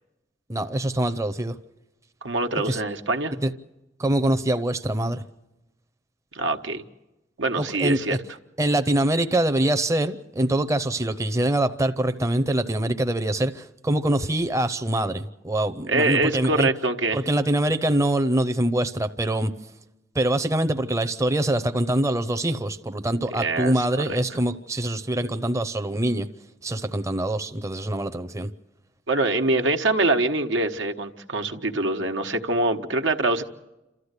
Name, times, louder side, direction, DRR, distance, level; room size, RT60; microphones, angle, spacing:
voice 1, 0.5-1.6 2.7-2.8 3.4-3.5 4.0-5.2 7.6-8.2 8.6-16.7 17.1-19.5 20.1-26.3 26.6-28.5, right 1 dB, 15° right, 0.6 m, -24 dB
voice 2, 2.2-3.4 6.3-6.8 7.4-8.2 15.9-17.2 23.3-24.2 29.1-33.4, right 2 dB, 90° right, 1.3 m, -24 dB
28.5 x 13.5 x 8.2 m
head